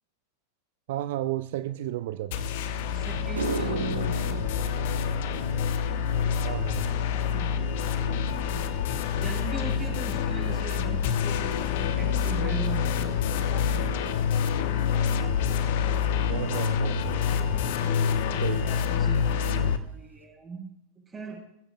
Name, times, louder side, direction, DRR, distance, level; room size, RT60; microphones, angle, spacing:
voice 1, 0.9-2.5 6.4-6.9 16.3-17.2 18.4-18.7, right 14 dB, 55° right, 12 dB, 0.6 m, -32 dB
sound 1, 2.3-19.8, left 7 dB, 50° left, 1.0 m, -27 dB
sound 2, 2.6-2.7 3.2-11.7 12.0-12.4 13.1-13.2 16.0-16.1 17.7-17.8 18.0-18.3 18.5-19.1 19.5-19.6 20.1-20.2, right 3 dB, 70° right, 1.7 m, -39 dB
voice 2, 2.9-8.7 9.2-15.4 17.5-21.4, right 4 dB, 15° right, -8 dB, 5.1 m, -41 dB
27.0 x 15.5 x 2.4 m, 0.77 s
figure-of-eight pair, 90°, 0 cm